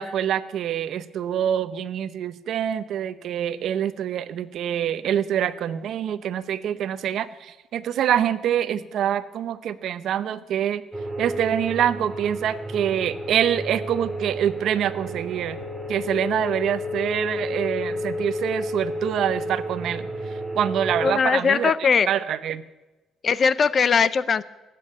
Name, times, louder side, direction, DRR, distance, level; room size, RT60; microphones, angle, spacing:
voice 1, 0.0-10.8 11.2-15.6 15.9-20.1 20.5-22.6, right 10 dB, 65° right, 14 dB, 0.8 m, -25 dB
sound 1, 10.9-21.1, equal, 5° right, 2.1 m, -31 dB
voice 2, 21.0-22.1 23.2-24.4, left 6 dB, 35° left, 17 dB, 0.6 m, -20 dB
18.0 x 8.5 x 8.7 m, 1.1 s
cardioid pair, 140°, 0 cm